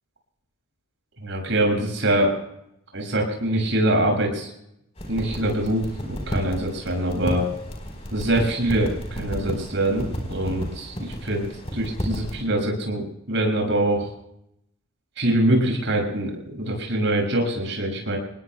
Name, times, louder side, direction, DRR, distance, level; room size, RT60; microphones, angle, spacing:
voice 1, 1.2-2.3 2.9-4.5 5.1-7.5 8.1-11.5 11.7-14.1 15.2-18.2, right 1 dB, 55° right, 1 dB, 6.8 m, -24 dB
sound 1, 5.0-12.4, equal, 30° left, 4.3 m, -33 dB
27.0 x 20.0 x 2.3 m, 0.80 s
head